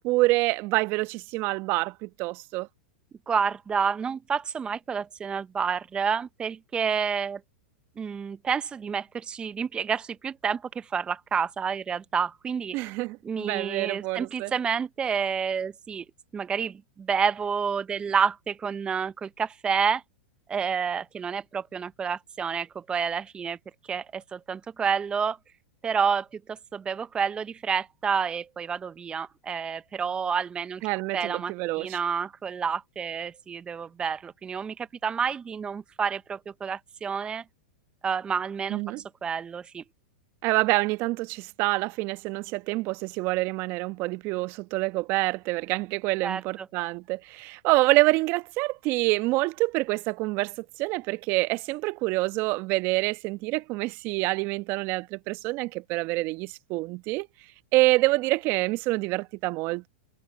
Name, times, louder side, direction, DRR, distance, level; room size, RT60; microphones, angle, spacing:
voice 1, 0.0-2.7 12.7-14.5 30.8-32.0 38.7-39.0 40.4-57.3 57.7-59.9, right 21 dB, 45° right, 1.3 m, -26 dB
voice 2, 3.3-7.4 8.0-12.8 13.2-16.0 16.3-16.7 17.1-20.0 20.5-23.6 23.9-25.4 25.8-30.8 31.1-31.5 31.8-37.4 38.0-38.8 39.2-39.8 46.2-46.7, right 6 dB, 20° right, 0.5 m, -29 dB
hypercardioid pair, 110°, 5 cm